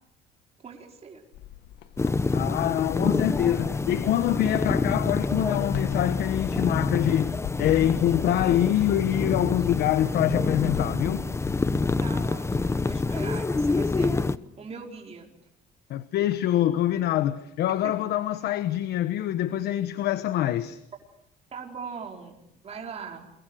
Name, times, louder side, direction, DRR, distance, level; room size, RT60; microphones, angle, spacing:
voice 1, 0.6-1.2 12.0-14.1 14.6-15.3 17.8-17.9 21.5-23.3, right 6 dB, 40° right, 4.8 m, -40 dB
sound 1, 1.3-12.9, left 11 dB, 90° left, 1.7 m, -41 dB
sound 2, 2.0-14.4, left 3 dB, 15° left, 0.9 m, -27 dB
voice 2, 2.3-11.3 15.9-20.8, left 12 dB, 75° left, 1.2 m, -25 dB
28.5 x 23.5 x 6.5 m
cardioid pair, 110°, 17 cm